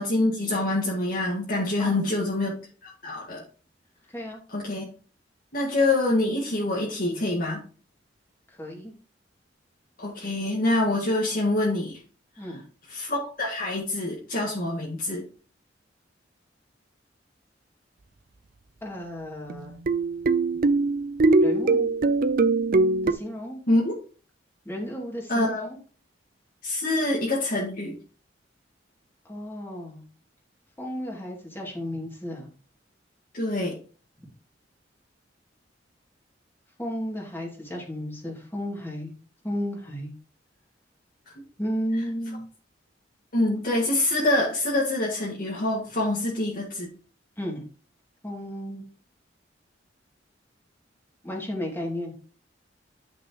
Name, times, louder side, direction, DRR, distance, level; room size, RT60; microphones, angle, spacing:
voice 1, 0.0-2.5 2.8-3.4 4.5-4.8 5.5-7.6 10.0-12.0 12.9-15.2 23.7-23.9 25.3-25.7 26.6-28.0 33.3-33.8 43.3-46.9, left 2 dB, 55° left, -4 dB, 2.0 m, -25 dB
voice 2, 4.1-4.4 8.5-8.9 12.4-12.6 18.8-19.8 21.4-21.9 23.0-23.6 24.6-25.8 29.2-30.0 30.8-32.5 36.8-39.1 39.4-40.1 41.6-42.4 47.4-47.7 48.2-48.9 51.2-52.1, equal, 15° left, -2 dB, 2.7 m, -33 dB
sound 1, 19.5-23.1, right 3 dB, 50° right, 0.5 m, -22 dB
10.5 x 6.2 x 3.1 m, 0.39 s
head